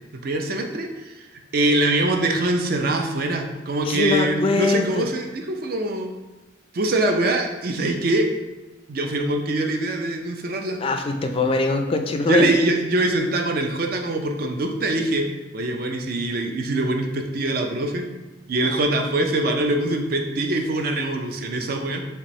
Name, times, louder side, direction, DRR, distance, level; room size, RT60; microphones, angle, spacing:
voice 1, 0.2-1.3 1.5-6.1 6.7-8.3 8.9-10.8 12.3-15.3 15.5-18.1 18.5-22.1, right 2 dB, 50° right, 3 dB, 0.5 m, -23 dB
voice 2, 3.8-5.1 10.8-12.5 18.6-18.8, left 3 dB, 30° left, 5 dB, 0.3 m, -22 dB
4.3 x 3.4 x 3.1 m, 1.1 s
head